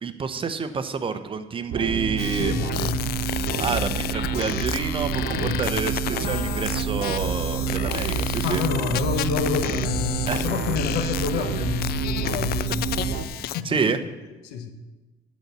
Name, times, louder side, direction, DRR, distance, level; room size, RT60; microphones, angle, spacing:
voice 1, 0.0-2.6 3.6-8.6 10.3-10.4 11.0-11.1 13.6-14.0, right 5 dB, 30° right, 10 dB, 0.7 m, -28 dB
sound 1, 1.7-13.2, right 6 dB, 75° right, 1.0 m, -28 dB
sound 2, 2.2-13.6, left 13 dB, 65° left, 0.4 m, -32 dB
voice 2, 2.4-3.1 5.4-5.6 8.4-12.9 13.5-13.8 14.4-14.7, left 6 dB, 90° left, 7 dB, 1.2 m, -28 dB
12.0 x 4.2 x 8.2 m, 1.1 s
cardioid pair, 110°, 17 cm